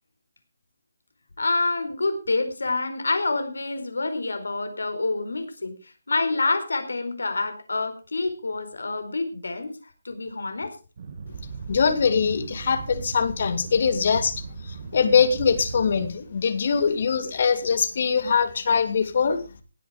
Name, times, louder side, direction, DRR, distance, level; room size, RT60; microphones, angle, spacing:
voice 1, 1.4-9.7 10.0-10.8, left 3 dB, 80° left, 8 dB, 4.5 m, -27 dB
sound 1, 11.0-16.1, right 5 dB, 45° right, 2.0 m, -37 dB
voice 2, 11.7-19.4, left 6 dB, 50° left, 9 dB, 2.7 m, -22 dB
18.0 x 8.7 x 5.2 m, 0.33 s
figure-of-eight pair, 160°, 0 cm